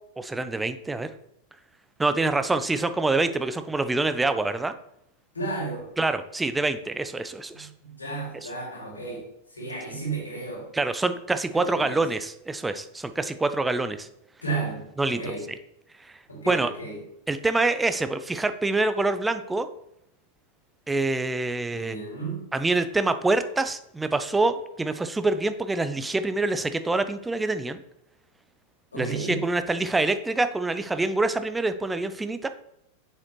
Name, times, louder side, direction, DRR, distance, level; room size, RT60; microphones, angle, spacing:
voice 1, 0.2-1.1 2.0-4.7 6.0-7.7 10.7-14.1 15.0-15.3 16.0-16.2 16.5-16.7 17.3-19.7 20.9-22.0 22.5-27.8 28.9-32.5, right 2 dB, 10° right, 11 dB, 0.4 m, -26 dB
voice 2, 5.3-5.9 7.5-10.7 11.5-12.1 14.4-15.4 16.3-17.0 21.7-22.5 28.9-29.4, right 3 dB, 75° left, -2 dB, 2.5 m, -33 dB
7.3 x 6.3 x 3.1 m, 0.80 s
figure-of-eight pair, 90°, 0 cm